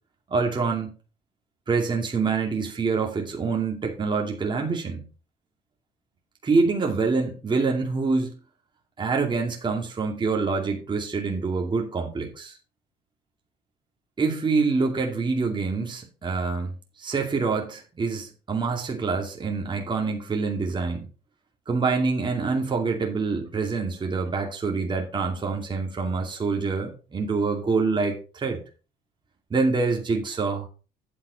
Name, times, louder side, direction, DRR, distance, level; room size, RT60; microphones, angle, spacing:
voice 1, 0.3-0.9 1.7-5.1 6.4-8.3 9.0-12.6 14.2-16.7 17.0-21.1 21.7-28.6 29.5-30.7, right 4 dB, 25° right, 2.4 m, -26 dB
9.3 x 7.3 x 4.1 m
cardioid pair, 110°, 17 cm